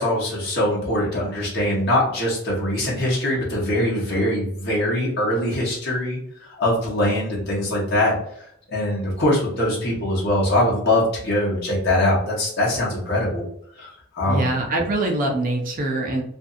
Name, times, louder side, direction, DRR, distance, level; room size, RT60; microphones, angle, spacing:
voice 1, 0.0-8.1 8.7-13.4 13.8-14.5, left 1 dB, 55° left, -5 dB, 1.1 m, -22 dB
voice 2, 14.3-16.2, right 2 dB, 45° right, 1 dB, 0.6 m, -23 dB
2.6 x 2.5 x 2.4 m, 0.70 s
head